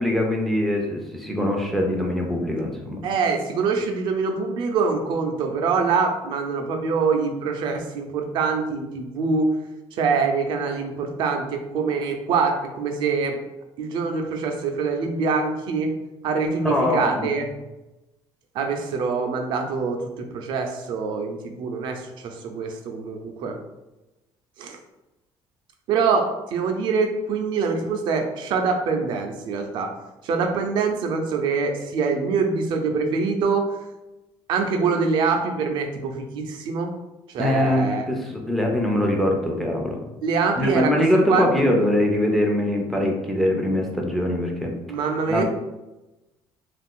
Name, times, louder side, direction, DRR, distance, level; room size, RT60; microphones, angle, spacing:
voice 1, 0.0-3.0 16.6-17.3 37.4-40.0 40.6-44.8 45.3-45.4, left 1 dB, ahead, 0 dB, 0.4 m, -22 dB
voice 2, 3.0-9.5 9.9-13.4 13.8-15.9 16.2-17.5 18.5-23.6 24.6-24.8 25.9-29.9 30.2-33.7 34.5-36.9 37.3-38.1 40.2-40.9 41.3-41.7 44.9-45.4, right 5 dB, 60° right, 4 dB, 0.5 m, -24 dB
2.4 x 2.3 x 3.6 m, 1.0 s
cardioid pair, 160°, 9 cm